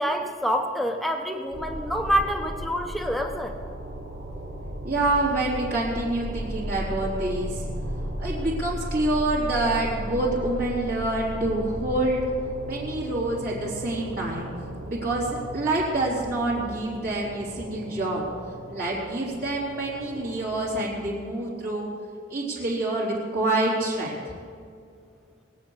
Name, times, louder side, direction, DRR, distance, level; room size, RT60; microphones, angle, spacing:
voice 1, 0.0-3.6, equal, ahead, 4 dB, 1.1 m, -27 dB
sound 1, 1.5-20.9, right 1 dB, 75° right, 2.6 m, -36 dB
voice 2, 4.8-7.7 8.2-12.2 12.7-14.5 14.8-18.3 18.7-21.9 22.3-24.4, right 2 dB, 45° right, -7 dB, 3.5 m, -27 dB
21.0 x 8.6 x 6.4 m, 2.3 s
head